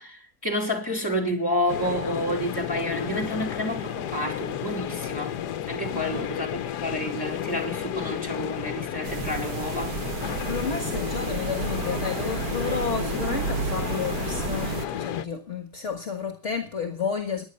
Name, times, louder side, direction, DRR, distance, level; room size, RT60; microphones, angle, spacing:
voice 1, 0.0-5.4 5.7-9.9, equal, 15° left, 4.1 m, -30 dB
sound 1, 1.7-15.2, left 10 dB, 80° left, 1.4 m, -32 dB
voice 2, 5.9-6.3 10.4-17.4, left 6 dB, 50° left, 1.9 m, -31 dB
sound 2, 9.0-14.9, right 7 dB, 70° right, 1.4 m, -32 dB
15.5 x 10.5 x 5.4 m
omnidirectional pair, 1.7 m